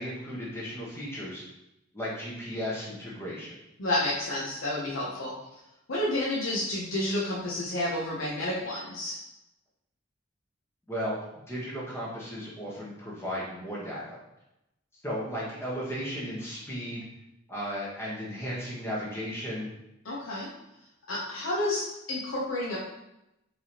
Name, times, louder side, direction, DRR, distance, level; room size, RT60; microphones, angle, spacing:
voice 1, 0.0-1.4 1.9-3.5 10.9-11.2 11.5-14.2 15.0-17.1 17.5-19.7, equal, 15° left, -5 dB, 1.1 m, -35 dB
voice 2, 3.8-5.4 5.9-9.2 20.0-20.5 21.1-22.8, left 1 dB, 90° left, -4 dB, 0.7 m, -30 dB
4.6 x 3.4 x 2.9 m, 0.88 s
head